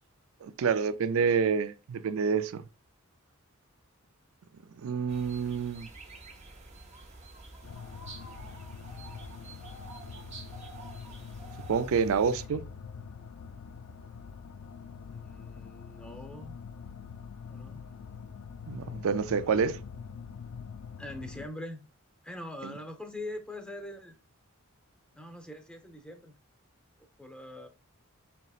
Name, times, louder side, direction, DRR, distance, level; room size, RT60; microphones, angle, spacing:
voice 1, 0.4-2.6 4.8-5.9 11.7-12.6 18.7-19.8 22.6-22.7, right 6 dB, 70° right, 0.4 m, -28 dB
sound 1, 5.1-12.5, right 3 dB, 30° right, 0.7 m, -48 dB
voice 2, 5.3-5.6 15.1-16.6 17.5-17.8 21.0-21.8 22.2-24.2 25.1-26.3 27.2-27.7, left 1 dB, 5° left, 0.6 m, -43 dB
sound 2, 7.6-21.5, left 6 dB, 75° left, 0.4 m, -44 dB
5.4 x 2.9 x 2.4 m
head